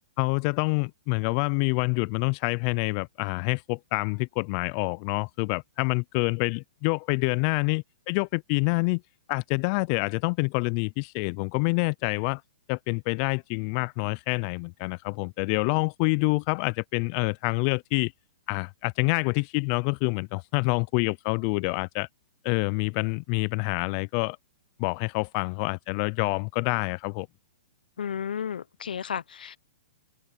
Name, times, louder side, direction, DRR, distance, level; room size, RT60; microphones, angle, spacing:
voice 1, 0.2-9.0 9.3-12.4 12.7-18.1 18.5-22.1 22.4-24.4 24.8-27.3, left 31 dB, 40° left, 0.5 m, -27 dB
voice 2, 28.0-29.6, left 8 dB, 80° left, 0.9 m, -33 dB
hypercardioid pair, 130°, 5 cm